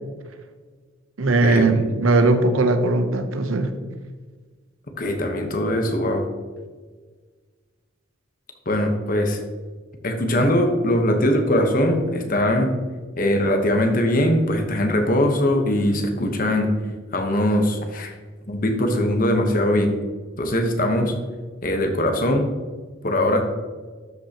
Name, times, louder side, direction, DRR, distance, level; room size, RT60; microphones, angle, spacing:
voice 1, 1.2-3.7, right 2 dB, 90° right, 8 dB, 0.7 m, -19 dB
voice 2, 5.0-6.3 8.7-9.4 10.0-12.7 13.2-16.7 17.1-18.1 18.5-19.9 20.4-21.1 21.6-22.5 23.0-23.4, left 1 dB, 45° left, 4 dB, 1.0 m, -21 dB
12.5 x 5.5 x 2.9 m, 1.4 s
head